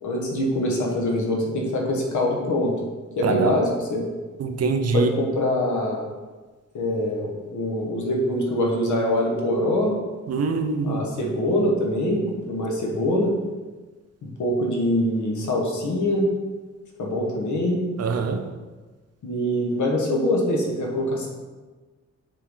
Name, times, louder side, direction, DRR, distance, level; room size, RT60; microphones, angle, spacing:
voice 1, 0.0-2.7 3.2-4.1 4.9-6.0 6.7-9.9 10.8-13.3 14.2-16.3 17.0-17.8 19.2-21.3, left 1 dB, 75° left, -1 dB, 1.4 m, -24 dB
voice 2, 3.2-3.5 4.4-5.1 10.3-11.0 18.0-18.4, right 5 dB, 55° right, 6 dB, 0.6 m, -24 dB
6.8 x 4.5 x 3.8 m, 1.3 s
wide cardioid pair, 150°, 30 cm